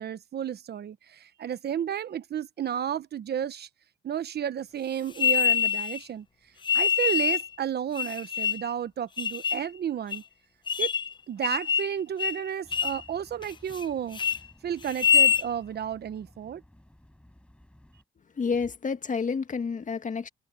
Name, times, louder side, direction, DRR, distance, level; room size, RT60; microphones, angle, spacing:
voice 1, 0.0-3.7 4.0-6.2 6.7-10.2 10.8-10.9 11.3-14.2 14.6-16.6, right 9 dB, 55° right, 1.0 m, -32 dB
sound 1, 5.2-6.0 6.6-7.5 7.9-8.7 9.2-9.7 10.1-10.2 10.7-11.1 11.4-11.9 12.2-12.4 12.7-13.0 13.4-13.8 14.1-14.4 14.9-15.5, left 6 dB, 25° left, 0.4 m, -25 dB
sound 2, 12.6-18.0, left 1 dB, 5° left, 6.5 m, -56 dB
voice 2, 18.4-20.3, left 5 dB, 40° left, 2.0 m, -29 dB
cardioid pair, 90°, 20 cm